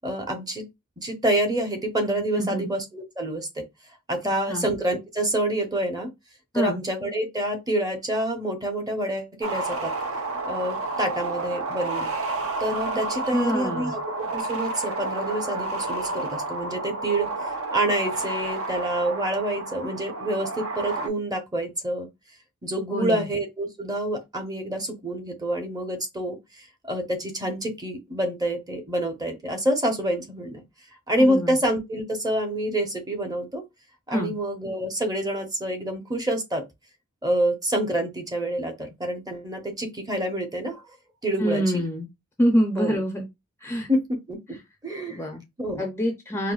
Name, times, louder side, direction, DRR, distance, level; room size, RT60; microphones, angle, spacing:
voice 1, 0.0-0.6 1.0-3.6 4.1-6.1 6.5-9.9 10.4-12.1 12.6-17.3 17.7-22.1 22.6-30.6 31.1-33.6 34.1-36.6 37.2-40.8 41.2-41.8 42.7-43.0 43.9-44.4 44.8-45.3 45.6-45.9, right 1 dB, 15° right, 0.8 m, -27 dB
voice 2, 2.4-2.7 4.2-4.7 6.5-6.8 13.3-14.0 22.9-23.3 31.2-31.6 34.1-34.3 41.4-42.1 42.4-43.3 43.6-43.9 45.1-45.4 45.8-46.5, equal, 10° left, 0.5 m, -26 dB
sound 1, 9.4-21.1, right 3 dB, 65° right, 0.8 m, -30 dB
4.7 x 2.0 x 2.3 m
head